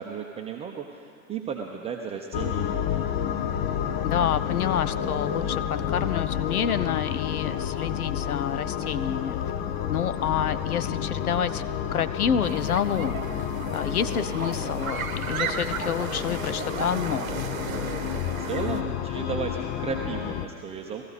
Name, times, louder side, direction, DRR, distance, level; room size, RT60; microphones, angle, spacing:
voice 1, 0.0-2.8 18.4-21.0, right 6 dB, 15° right, 1 dB, 0.7 m, -34 dB
sound 1, 2.3-20.5, left 9 dB, 25° left, 0.5 m, -30 dB
voice 2, 4.0-9.4 9.9-11.6 11.9-17.3, left 8 dB, 80° left, 14 dB, 0.7 m, -28 dB
sound 2, 12.4-18.8, right 7 dB, 65° right, 1.0 m, -34 dB
19.0 x 14.0 x 4.2 m, 2.3 s
hypercardioid pair, 105°, 43 cm